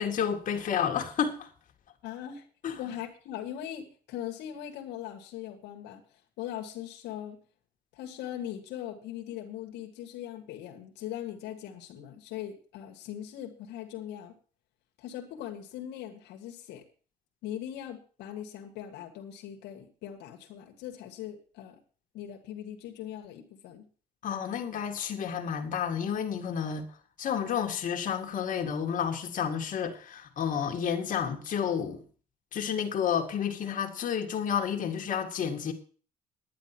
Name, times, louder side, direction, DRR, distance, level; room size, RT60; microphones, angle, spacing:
voice 1, 0.0-1.5 2.6-2.8 24.2-26.9 27.2-32.0 32.5-35.7, left 8 dB, 50° left, 2.2 m, -30 dB
voice 2, 2.0-2.5 2.8-6.0 6.4-7.4 7.9-14.3 15.0-16.8 17.4-21.8 22.1-23.9, left 11 dB, 85° left, 1.8 m, -40 dB
10.5 x 9.8 x 6.1 m
cardioid pair, 110°, 17 cm